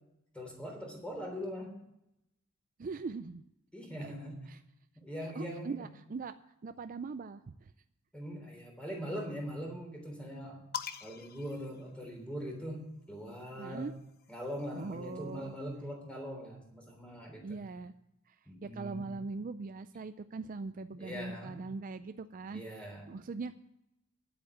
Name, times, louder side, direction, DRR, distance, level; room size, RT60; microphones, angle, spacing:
voice 1, 0.3-1.8 3.7-4.4 5.0-5.9 8.1-10.6 11.0-13.9 14.3-17.6 18.5-19.1 20.9-21.5 22.5-23.0, equal, 5° left, 1 dB, 3.4 m, -41 dB
voice 2, 2.8-3.4 4.0-4.1 4.5-4.6 5.4-6.3 6.6-7.7 13.6-13.9 14.7-15.5 17.4-17.9 18.3-18.4 18.6-23.5, right 4 dB, 40° right, 11 dB, 0.4 m, -41 dB
sound 1, 10.7-12.5 13.7-15.3, left 9 dB, 50° left, 0.7 m, -45 dB
10.5 x 8.6 x 7.3 m, 0.85 s
head